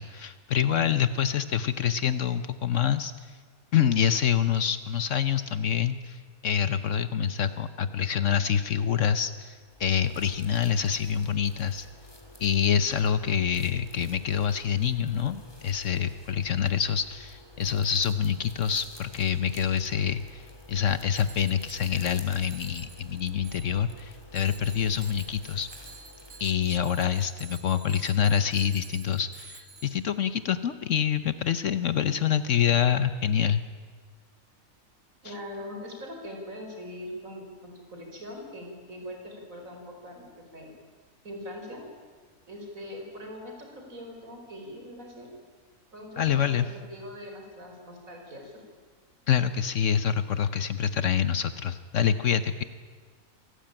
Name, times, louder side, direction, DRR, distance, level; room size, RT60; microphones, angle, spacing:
voice 1, 0.0-3.4 3.7-11.9 12.4-20.4 20.7-25.7 26.4-33.6 46.2-46.7 49.3-52.6, left 8 dB, 65° left, 12 dB, 1.2 m, -26 dB
sound 1, 9.6-27.4, left 1 dB, 15° left, 3.1 m, -50 dB
Bicycle bell, 21.1-22.1 22.4-24.0 24.3-30.2, right 4 dB, 50° right, 2.2 m, -50 dB
voice 2, 35.2-40.3 40.5-40.7 41.2-41.8 42.5-45.3 45.9-48.6, left 1 dB, 75° right, 2 dB, 5.4 m, -41 dB
26.0 x 18.5 x 8.9 m, 1.5 s
omnidirectional pair, 1.4 m